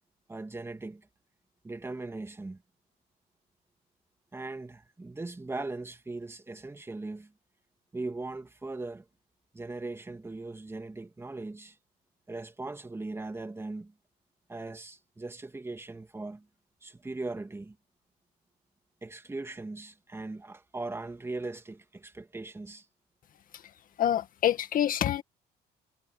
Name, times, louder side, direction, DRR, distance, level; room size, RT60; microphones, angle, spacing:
voice 1, 0.3-1.1 1.6-2.6 4.3-7.3 7.9-9.1 9.5-11.8 12.3-13.9 14.5-16.5 16.8-17.8 19.0-22.9, right 2 dB, 15° right, 2.9 m, -39 dB
voice 2, 24.0-25.2, left 10 dB, 55° left, 2.0 m, -26 dB
cardioid pair, 110°, 17 cm